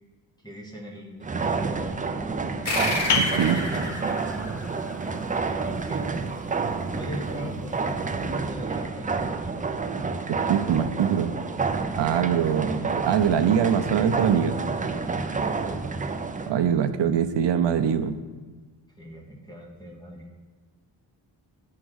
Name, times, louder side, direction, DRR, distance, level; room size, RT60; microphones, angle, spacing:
voice 1, 0.4-2.9 4.6-6.4 6.9-9.2 14.9-15.9 19.0-20.3, equal, 10° left, -2 dB, 1.1 m, -41 dB
sound 1, 1.2-16.5, right 4 dB, 20° right, 0.3 m, -29 dB
sound 2, 2.7-5.6, left 1 dB, 35° left, 1.2 m, -31 dB
sound 3, 3.1-8.5, left 3 dB, 65° left, 0.8 m, -34 dB
voice 2, 10.3-11.4 12.0-14.6 16.5-18.2, right 8 dB, 70° right, 8 dB, 0.7 m, -23 dB
10.0 x 3.7 x 6.3 m, 1.4 s
wide cardioid pair, 160°, 44 cm